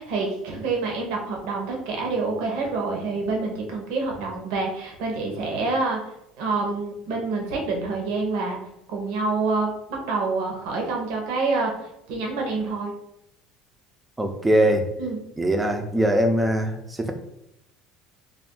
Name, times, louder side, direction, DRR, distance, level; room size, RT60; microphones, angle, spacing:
voice 1, 0.0-8.6 8.9-9.7 10.0-12.9 15.0-15.2, right 3 dB, 75° right, 0 dB, 0.8 m, -27 dB
voice 2, 14.2-14.8 15.4-17.1, right 1 dB, 10° right, 5 dB, 0.5 m, -21 dB
2.4 x 2.3 x 3.7 m, 0.82 s
supercardioid pair, 110°, 0 cm